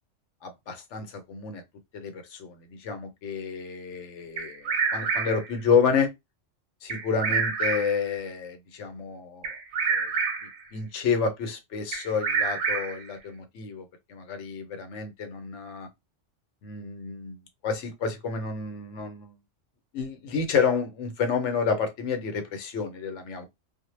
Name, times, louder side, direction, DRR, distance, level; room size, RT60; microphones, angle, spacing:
voice 1, 0.4-1.6 1.9-6.1 6.8-9.5 9.9-10.1 10.7-15.9 16.6-17.4 17.6-19.3 19.9-23.5, left 5 dB, 75° left, 0.9 m, -29 dB
Bird vocalization bird call bird song, 4.4-5.5 6.9-8.1 9.4-10.6 11.9-13.1, right 5 dB, 70° right, 0.8 m, -28 dB
2.1 x 2.0 x 3.0 m
omnidirectional pair, 1.3 m